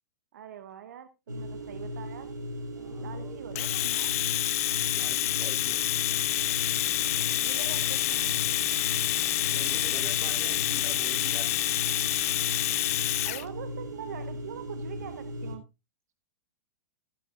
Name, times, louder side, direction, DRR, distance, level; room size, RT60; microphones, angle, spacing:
voice 1, 0.3-2.3 3.0-4.2 7.4-8.3 10.2-10.5 13.2-15.6, right 9 dB, 65° right, 10 dB, 1.1 m, -43 dB
sound 1, 1.3-15.6, equal, 90° right, 2.6 m, -38 dB
voice 2, 2.7-3.4 4.9-5.8 9.5-11.5, right 3 dB, 20° right, 3 dB, 7.5 m, -45 dB
Domestic sounds home sounds, 3.6-13.4, left 16 dB, 55° left, 0.6 m, -28 dB
14.5 x 11.0 x 2.4 m, 0.25 s
hypercardioid pair, 105°, 9 cm